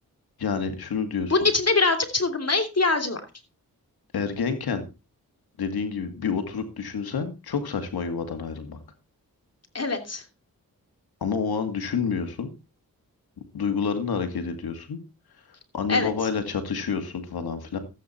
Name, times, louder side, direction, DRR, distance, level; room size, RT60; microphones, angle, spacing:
voice 1, 0.4-1.3 4.1-4.9 5.6-8.8 11.2-12.5 13.5-15.0 15.7-17.8, left 6 dB, 85° left, 8 dB, 2.2 m, -28 dB
voice 2, 1.3-3.2 9.7-10.2 15.9-16.1, left 3 dB, 45° left, 6 dB, 3.1 m, -23 dB
13.5 x 8.9 x 4.4 m, 0.29 s
cardioid pair, 45°, 36 cm